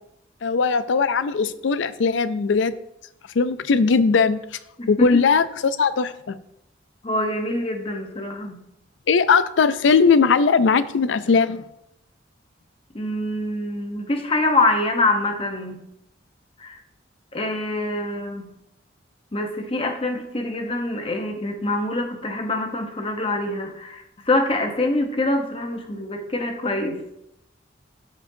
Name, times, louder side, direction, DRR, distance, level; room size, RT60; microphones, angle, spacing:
voice 1, 0.4-2.7 3.4-4.4 4.9-6.4 9.1-11.6, left 5 dB, 75° left, 14 dB, 0.4 m, -19 dB
voice 2, 7.0-8.6 12.9-15.8 16.6-16.8 17.3-18.5 19.3-27.0, left 2 dB, 30° left, 4 dB, 0.9 m, -25 dB
12.5 x 5.1 x 2.7 m, 0.81 s
head